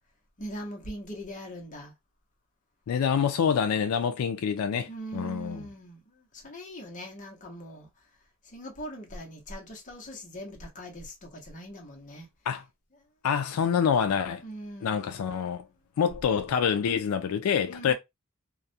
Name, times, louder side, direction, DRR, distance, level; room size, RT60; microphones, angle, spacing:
voice 1, 0.4-1.9 4.8-8.1 8.4-12.3 14.4-15.5 17.6-17.9, equal, 35° left, 0.8 m, -41 dB
voice 2, 2.9-5.6 12.5-12.6 13.2-14.4 14.8-15.6 16.0-17.9, left 7 dB, 85° left, 0.3 m, -26 dB
2.3 x 2.1 x 2.6 m
head